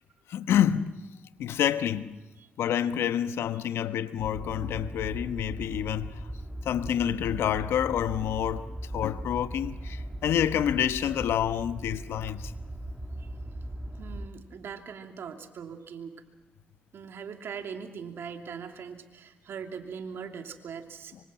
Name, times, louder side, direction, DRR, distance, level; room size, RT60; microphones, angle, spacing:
voice 1, 0.3-0.9 1.4-2.2 2.6-6.2 6.6-8.7 8.9-12.5, left 10 dB, 75° left, 1.1 m, -28 dB
sound 1, 4.2-14.3, right 1 dB, 10° right, 2.8 m, -39 dB
voice 2, 14.0-16.2 16.9-21.1, right 6 dB, 65° right, 2.7 m, -41 dB
25.0 x 25.0 x 6.2 m
supercardioid pair, 50°, 4 cm